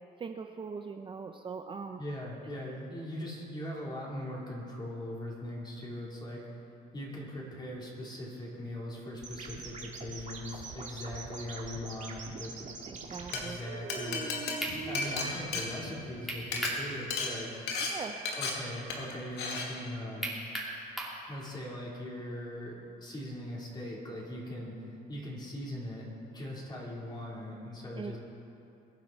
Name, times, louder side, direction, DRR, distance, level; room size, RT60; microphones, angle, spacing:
voice 1, 0.2-2.0 12.9-13.6 17.8-18.2 28.0-28.2, right 5 dB, 30° right, 5 dB, 0.7 m, -41 dB
voice 2, 2.0-6.6 6.9-12.5 13.3-14.3 14.9-17.5 18.4-20.3 21.3-26.1 26.3-28.2, left 1 dB, 25° left, -4 dB, 4.2 m, -40 dB
sound 1, 9.2-15.4, right 5 dB, 45° right, 2.0 m, -43 dB
Glass, 13.1-13.4 13.9-16.2 16.4-16.7 17.1-17.3 17.7-17.9 18.3-18.5 18.9-19.1 19.4-19.7, left 4 dB, 80° left, 2.3 m, -34 dB
sound 2, 14.6-14.8 16.3-16.8 17.2-17.3 20.2-21.2, right 1 dB, ahead, 3.1 m, -35 dB
22.5 x 9.8 x 4.5 m, 2.8 s
cardioid pair, 110°, 17 cm